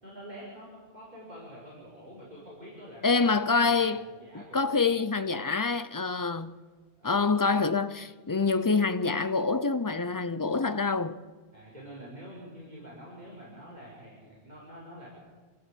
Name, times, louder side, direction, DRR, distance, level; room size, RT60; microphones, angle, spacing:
voice 1, 0.0-4.8 7.0-7.3 11.5-15.1, equal, 40° right, 5.9 m, -47 dB
voice 2, 3.0-4.1 4.5-6.6 7.0-11.2, left 4 dB, 20° left, 0.7 m, -26 dB
27.0 x 14.5 x 8.6 m
omnidirectional pair, 1.1 m